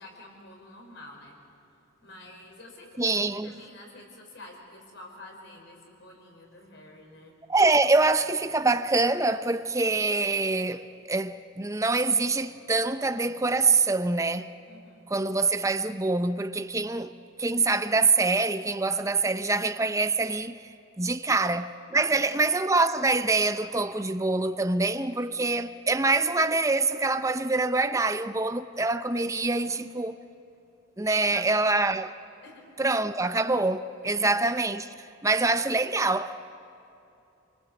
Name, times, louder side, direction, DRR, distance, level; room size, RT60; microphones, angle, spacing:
voice 1, 0.0-1.4 2.0-7.4 14.7-15.0 21.3-21.4 22.2-22.4 29.4-29.9 31.1-31.9 32.4-32.6 34.0-34.3, left 2 dB, 60° left, 5.1 m, -48 dB
voice 2, 3.0-3.5 7.5-14.5 15.1-17.1 17.4-20.6 21.0-30.2 31.0-32.1 32.8-36.5, right 3 dB, 15° right, 0.7 m, -25 dB
28.5 x 20.0 x 8.0 m
head